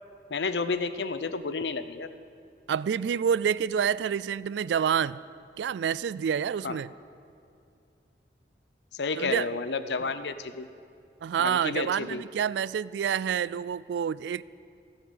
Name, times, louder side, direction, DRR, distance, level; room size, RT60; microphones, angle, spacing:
voice 1, 0.3-2.1 6.6-6.8 8.9-10.7 11.4-12.2, left 4 dB, 80° left, 12 dB, 0.7 m, -31 dB
voice 2, 2.7-5.2 5.6-6.9 9.2-9.5 11.2-14.4, right 8 dB, 85° right, 20 dB, 0.3 m, -28 dB
17.0 x 7.9 x 8.0 m, 2.5 s
head